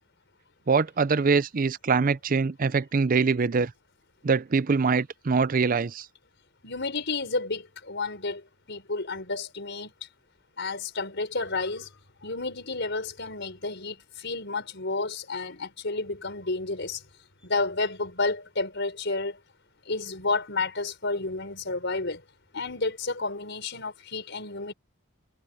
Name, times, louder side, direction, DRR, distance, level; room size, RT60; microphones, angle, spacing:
voice 1, 0.7-3.7 4.2-6.1, right 4 dB, 40° right, 0.5 m, -23 dB
voice 2, 6.6-9.9 10.6-11.9 12.2-17.0 17.4-19.4 19.9-22.2 22.5-24.7, left 3 dB, 60° left, 5.3 m, -31 dB
head